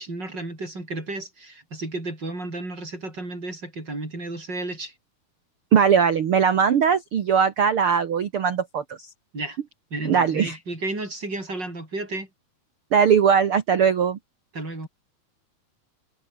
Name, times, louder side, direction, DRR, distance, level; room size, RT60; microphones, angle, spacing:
voice 1, 0.0-4.9 9.3-9.6 9.9-12.3 14.5-14.9, right 2 dB, 25° right, 8.4 m, -33 dB
voice 2, 5.7-9.1 10.0-10.6 12.9-14.2, right 7 dB, 75° right, 1.2 m, -20 dB
omnidirectional pair, 4.6 m